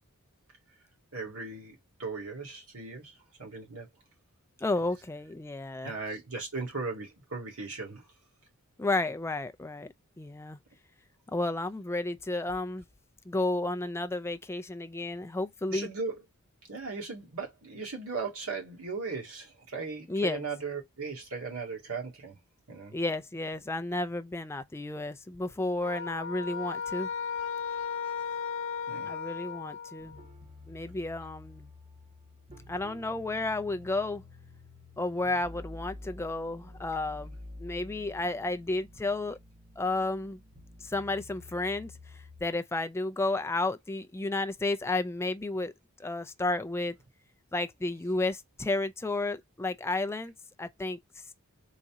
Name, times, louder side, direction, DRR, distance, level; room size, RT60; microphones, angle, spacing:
voice 1, 1.1-3.9 5.8-8.0 15.7-16.2 16.7-22.4 22.7-23.0 28.9-29.1, right 4 dB, 65° right, 2.1 m, -37 dB
voice 2, 4.6-6.0 8.8-10.6 11.3-12.9 13.3-15.9 20.1-20.5 22.9-27.1 29.1-30.2 30.7-31.7 32.7-34.2 35.0-39.4 39.8-40.4 40.8-45.7 46.0-47.0 47.5-50.3 50.6-51.0, left 2 dB, 10° left, 0.4 m, -32 dB
sound 1, 25.8-30.2, left 6 dB, 60° left, 0.6 m, -35 dB
sound 2, 30.0-42.5, left 2 dB, 25° right, 1.3 m, -49 dB
4.1 x 2.7 x 3.6 m
head